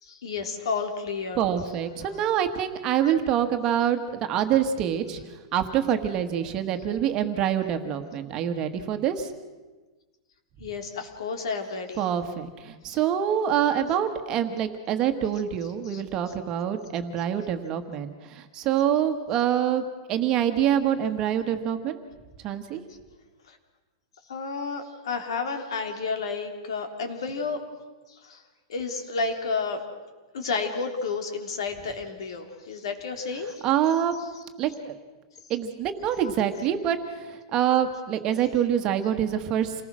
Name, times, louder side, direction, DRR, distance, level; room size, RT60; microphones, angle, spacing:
voice 1, 0.0-1.5 2.0-2.3 10.6-12.0 12.9-13.0 15.8-16.0 16.3-16.4 22.9-23.0 23.5-23.6 24.3-27.6 28.1-28.4 28.7-29.8 30.3-33.6, left 4 dB, 90° left, 5 dB, 3.4 m, -31 dB
voice 2, 1.4-5.2 5.5-9.3 12.0-22.0 22.4-22.8 33.6-34.1 34.6-34.9 35.5-39.8, right 9 dB, 25° right, 7 dB, 1.4 m, -26 dB
28.0 x 19.5 x 6.2 m, 1.3 s
supercardioid pair, 170°, 3 cm